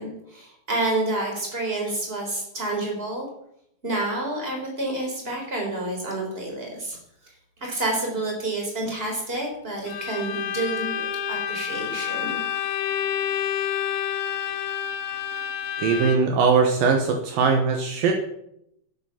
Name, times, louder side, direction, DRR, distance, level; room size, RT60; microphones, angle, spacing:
voice 1, 0.0-3.3 3.8-7.0 7.6-11.0 11.3-12.4, right 2 dB, 15° right, 0 dB, 3.9 m, -29 dB
Bowed string instrument, 9.9-16.4, left 9 dB, 80° left, 2.7 m, -29 dB
voice 2, 15.8-18.1, right 5 dB, 70° right, 3 dB, 2.8 m, -20 dB
11.5 x 9.8 x 5.8 m, 0.75 s
omnidirectional pair, 4.4 m